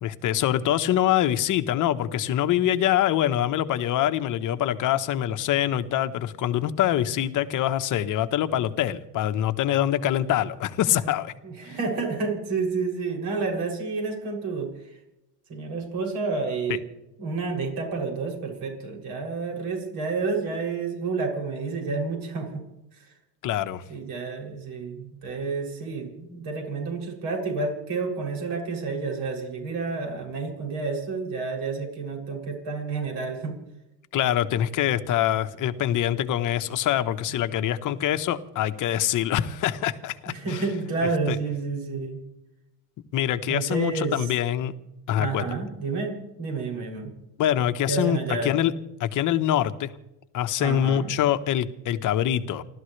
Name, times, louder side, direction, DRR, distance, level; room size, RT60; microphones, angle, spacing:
voice 1, 0.0-11.3 16.7-16.8 23.4-23.8 34.1-40.6 41.0-41.4 43.1-44.7 45.1-45.5 47.4-48.7 49.0-49.9 50.3-52.6, left 11 dB, 40° left, 10 dB, 1.2 m, -24 dB
voice 2, 11.4-14.7 15.5-16.8 17.2-22.6 23.9-33.6 40.3-42.2 43.5-44.3 45.2-47.1 47.9-48.5 50.6-51.1, right 4 dB, 50° right, 1 dB, 7.2 m, -30 dB
29.0 x 13.0 x 3.3 m, 0.90 s
supercardioid pair, 125°, 49 cm